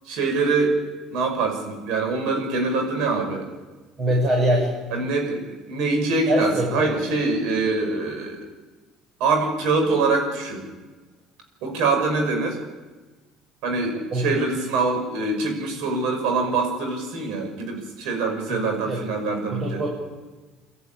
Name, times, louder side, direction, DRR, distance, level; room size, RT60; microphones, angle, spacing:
voice 1, 0.1-0.8 1.1-3.5 4.9-8.4 9.2-10.7 11.6-12.6 13.6-19.8, right 3 dB, 75° right, 4 dB, 6.0 m, -24 dB
voice 2, 4.0-4.7 6.3-7.0 14.1-14.3 18.5-19.0 19.5-19.9, right 1 dB, 40° right, -2 dB, 6.8 m, -23 dB
24.0 x 14.0 x 8.8 m, 1.3 s
supercardioid pair, 100°, 0 cm